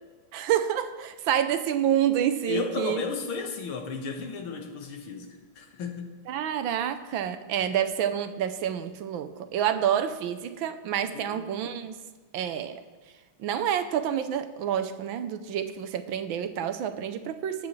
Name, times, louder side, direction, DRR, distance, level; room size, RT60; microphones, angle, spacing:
voice 1, 0.3-3.0 6.3-11.9 12.3-12.8 13.4-17.7, right 9 dB, 75° right, 10 dB, 1.4 m, -28 dB
voice 2, 2.4-6.2 11.1-11.5, left 4 dB, 85° left, 3 dB, 2.2 m, -34 dB
20.0 x 8.5 x 3.2 m, 1.4 s
omnidirectional pair, 2.3 m